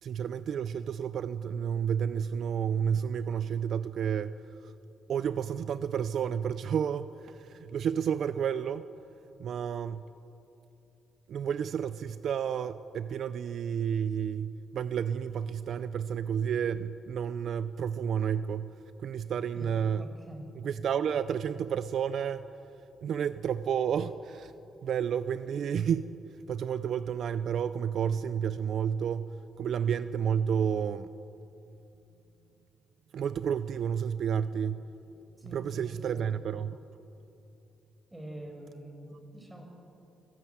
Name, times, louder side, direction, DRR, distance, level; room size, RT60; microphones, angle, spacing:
voice 1, 0.0-4.7 5.1-8.9 9.4-10.0 11.3-18.7 19.0-20.1 20.6-22.5 23.0-24.5 24.8-26.1 26.5-31.1 33.1-34.8 35.5-36.8, right 8 dB, 65° right, 13 dB, 0.5 m, -31 dB
voice 2, 19.5-20.5 35.4-36.3 38.1-39.6, right 1 dB, 10° right, 2 dB, 5.3 m, -45 dB
24.0 x 14.0 x 9.2 m, 2.9 s
cardioid pair, 105°, 0 cm